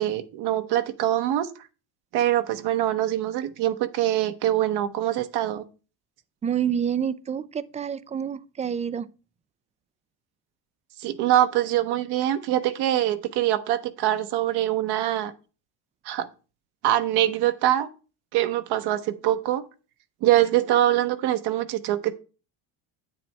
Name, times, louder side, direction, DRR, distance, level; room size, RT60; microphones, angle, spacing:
voice 1, 0.0-1.5 2.1-5.6 11.0-15.3 16.1-16.3 16.8-17.9 18.3-19.6 20.2-22.1, right 13 dB, 65° right, 1.0 m, -24 dB
voice 2, 6.4-9.1, right 8 dB, 20° right, 0.4 m, -28 dB
8.8 x 7.6 x 3.3 m
supercardioid pair, 105°, 42 cm